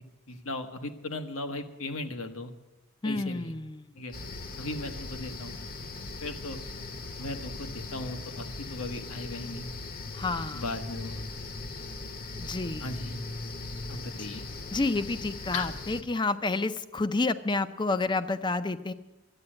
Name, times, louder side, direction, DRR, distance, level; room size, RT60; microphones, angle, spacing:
voice 1, 0.3-2.5 3.0-3.5 3.9-4.1 4.6-5.6 6.2-6.6 7.2-9.7 10.5-11.2 12.8-13.2 13.9-14.4 15.5-15.7, left 2 dB, 85° left, 6 dB, 1.2 m, -37 dB
voice 2, 3.0-3.9 10.1-10.6 12.4-12.9 14.7-18.9, left 3 dB, 20° left, 12 dB, 0.5 m, -29 dB
sound 1, 4.1-16.0, left 3 dB, 45° left, 0.9 m, -39 dB
12.5 x 8.8 x 9.8 m, 1.1 s
head